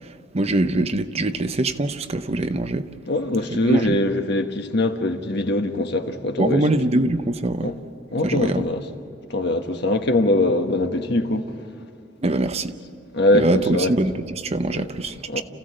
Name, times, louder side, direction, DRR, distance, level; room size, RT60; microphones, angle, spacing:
voice 1, 0.3-2.9 3.6-4.0 6.4-7.7 8.2-8.6 12.2-12.7 13.3-15.1, right 2 dB, 35° right, 0.7 m, -23 dB
voice 2, 3.1-6.7 7.6-7.8 8.1-8.8 9.3-11.5 13.1-13.9 14.7-14.9 15.3-15.4, left 1 dB, 65° left, 1.4 m, -22 dB
29.0 x 15.5 x 7.7 m
head